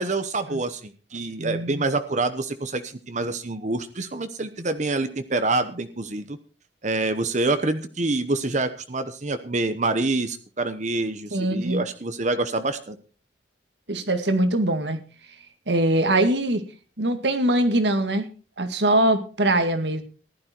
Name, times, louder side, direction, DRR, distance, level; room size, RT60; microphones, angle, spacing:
voice 1, 0.0-6.4 6.8-13.0, right 2 dB, 40° right, 10 dB, 0.9 m, -26 dB
voice 2, 1.4-1.8 11.3-11.8 13.9-15.0 15.7-16.6 17.0-18.3 18.6-20.0, right 1 dB, 70° right, 9 dB, 2.0 m, -22 dB
15.0 x 12.0 x 4.5 m, 0.37 s
head